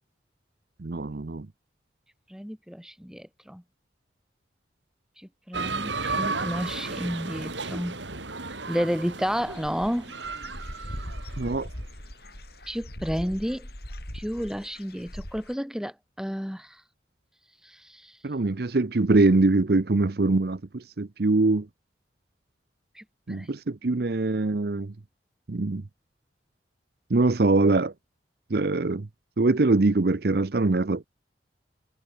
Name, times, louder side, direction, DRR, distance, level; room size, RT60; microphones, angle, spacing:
voice 1, 0.8-1.5 11.4-11.7 18.2-21.7 23.3-24.9 25.5-25.8 27.1-27.9 28.5-29.1 29.4-31.1, right 2 dB, 55° right, 0.7 m, -23 dB
voice 2, 2.3-3.6 5.2-8.0 8.7-10.1 12.7-13.7 14.1-16.8 17.6-18.2 23.0-23.5, equal, 5° right, 2.4 m, -31 dB
sound 1, 5.5-11.6, right 3 dB, 85° right, 4.7 m, -34 dB
Dog / Bird, 9.3-15.5, equal, 60° left, 7.6 m, -40 dB
head